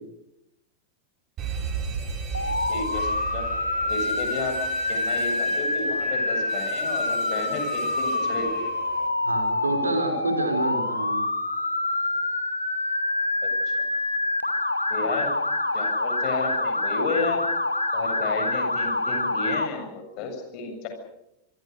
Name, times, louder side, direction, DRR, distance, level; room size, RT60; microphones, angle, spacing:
Alarm, 1.4-9.1, right 6 dB, 35° right, 5.6 m, -37 dB
Motor vehicle (road) / Siren, 2.3-19.7, left 2 dB, 85° left, 2.5 m, -26 dB
voice 1, 2.7-3.4 3.8-4.6 4.9-8.6 13.4-13.5 14.9-15.3 15.7-17.4 17.9-20.9, left 4 dB, 40° left, 5 dB, 7.6 m, -32 dB
voice 2, 9.2-11.3, right 2 dB, 75° right, 6 dB, 5.3 m, -28 dB
26.5 x 24.0 x 6.7 m, 0.88 s
figure-of-eight pair, 90°, 0 cm